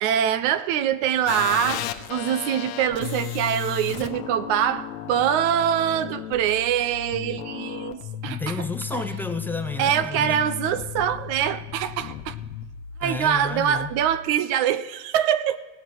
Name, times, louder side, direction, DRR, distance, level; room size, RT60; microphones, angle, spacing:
voice 1, 0.0-8.5 8.9-9.0 9.8-12.4 13.0-15.6, right 9 dB, 55° right, 14 dB, 0.6 m, -24 dB
sound 1, 1.3-14.2, left 11 dB, 80° left, 1.0 m, -35 dB
voice 2, 8.2-10.5 13.0-13.9, left 3 dB, 5° left, 4 dB, 0.6 m, -31 dB
17.0 x 6.9 x 6.2 m, 1.2 s
supercardioid pair, 135°, 39 cm